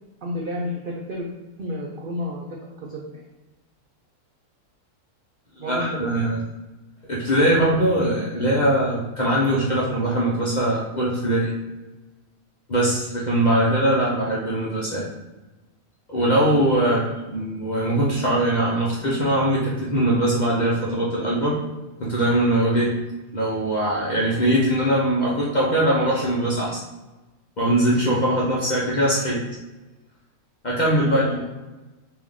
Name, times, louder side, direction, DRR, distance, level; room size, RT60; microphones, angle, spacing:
voice 1, 0.2-1.3 1.6-2.5 2.9-3.0 5.6-6.1 16.8-17.1 31.1-31.5, equal, 80° right, -2 dB, 0.4 m, -31 dB
voice 2, 5.6-6.4 7.1-11.5 12.7-15.1 16.1-21.5 22.0-23.0 23.3-26.8 27.6-29.4 30.6-31.4, right 1 dB, 50° left, -6 dB, 0.5 m, -21 dB
3.5 x 2.6 x 3.5 m, 1.1 s
omnidirectional pair, 1.6 m